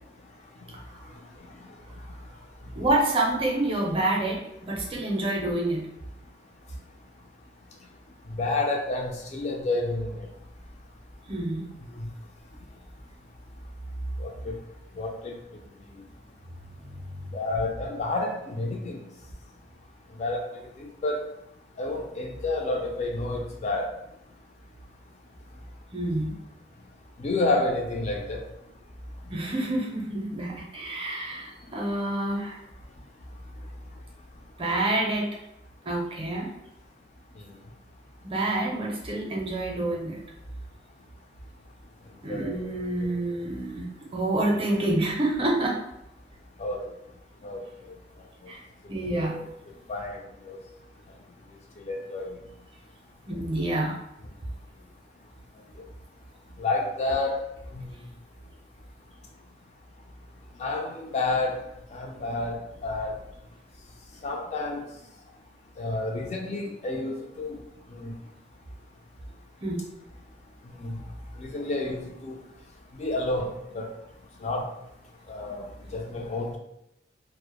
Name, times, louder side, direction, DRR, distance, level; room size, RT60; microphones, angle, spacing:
voice 1, 2.8-5.9 11.3-11.7 17.2-17.3 25.9-26.3 29.3-32.6 34.6-35.3 35.9-36.5 38.2-40.2 42.2-45.8 48.5-48.6 48.9-49.3 53.3-54.0 69.6-69.8, right 1 dB, 30° right, -1 dB, 0.5 m, -28 dB
voice 2, 8.4-10.3 14.2-14.6 15.0-15.3 17.3-19.0 20.2-20.4 21.0-21.2 21.8-23.9 27.2-28.4 42.3-42.7 43.0-43.1 46.6-46.9 47.4-47.6 49.1-49.5 49.9-50.2 50.5-50.6 51.9-52.3 56.6-57.5 57.7-57.9 60.6-61.6 61.9-63.1 64.2-64.8 65.8-67.5 67.9-68.1 70.8-71.0 71.4-72.4 73.0-73.9 74.4-74.7 75.3-75.6 75.9-76.6, left 2 dB, 40° left, 1 dB, 0.3 m, -29 dB
2.1 x 2.0 x 2.9 m, 0.82 s
head